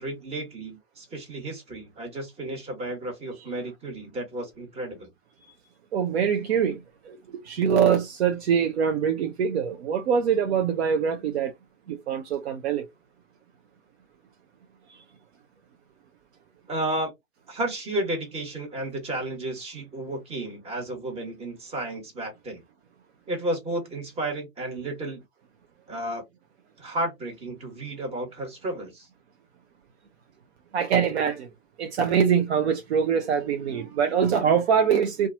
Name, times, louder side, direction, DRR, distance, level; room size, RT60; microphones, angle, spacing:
voice 1, 0.0-5.1 16.7-17.1 17.5-22.6 23.3-25.2 25.9-26.2 26.8-29.1, right 1 dB, 15° right, 1.3 m, -32 dB
voice 2, 5.9-6.8 7.1-7.2 7.4-11.5 11.9-12.8 30.7-31.5 31.8-35.3, right 7 dB, 55° right, 0.6 m, -23 dB
2.7 x 2.3 x 2.5 m
figure-of-eight pair, 110°, 39 cm